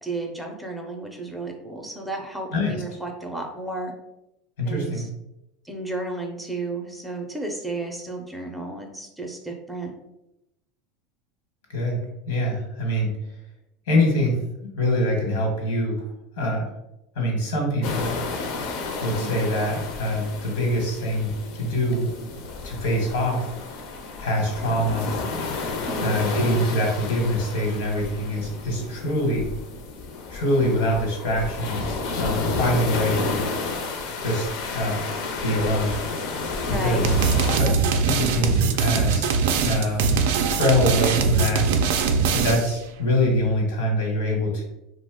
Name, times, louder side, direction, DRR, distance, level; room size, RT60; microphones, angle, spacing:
voice 1, 0.0-3.9 4.7-5.1 5.6-9.9 19.2-19.5 25.9-26.2 36.6-37.0, right 2 dB, 5° right, 1 dB, 0.5 m, -33 dB
voice 2, 4.6-5.0 11.7-12.0 12.3-13.1 13.9-16.1 16.4-16.6 17.1-18.2 19.0-22.1 22.6-23.5 24.2-25.1 26.0-29.5 30.3-33.5 34.2-35.0 35.4-36.0 36.7-37.1 37.5-39.3 39.6-41.7 42.3-44.6, left 1 dB, 85° left, 1 dB, 1.0 m, -24 dB
sound 1, 17.8-37.6, left 4 dB, 65° left, 0.5 m, -31 dB
sound 2, 37.0-42.8, right 5 dB, 85° right, 0.3 m, -22 dB
2.8 x 2.1 x 3.5 m, 0.89 s
supercardioid pair, 125°, 0 cm